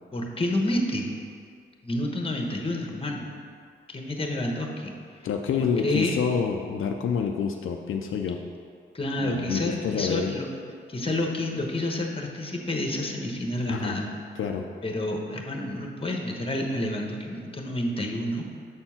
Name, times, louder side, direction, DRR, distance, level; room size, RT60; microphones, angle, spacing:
voice 1, 0.1-1.1 1.8-3.3 3.9-4.9 5.8-6.1 8.9-10.5 10.9-14.1 14.8-18.5, left 1 dB, 25° left, 1 dB, 1.1 m, -29 dB
voice 2, 5.2-8.4 9.2-10.3 13.7-14.0 14.4-14.6, left 6 dB, 75° left, 3 dB, 0.5 m, -27 dB
7.0 x 4.5 x 5.7 m, 2.2 s
cardioid pair, 85°, 21 cm